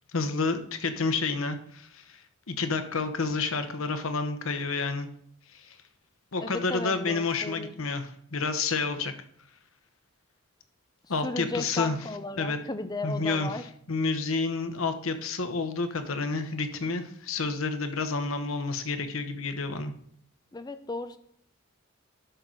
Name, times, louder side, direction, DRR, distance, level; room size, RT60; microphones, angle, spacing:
voice 1, 0.1-2.2 2.5-5.1 5.5-5.7 6.3-9.1 11.1-12.0 12.4-12.6 13.0-13.6 13.9-19.9, left 4 dB, 80° left, 8 dB, 1.0 m, -29 dB
voice 2, 6.4-7.7 11.2-13.7 20.5-21.2, left 3 dB, 20° left, 11 dB, 0.5 m, -35 dB
11.0 x 3.9 x 6.2 m, 0.66 s
head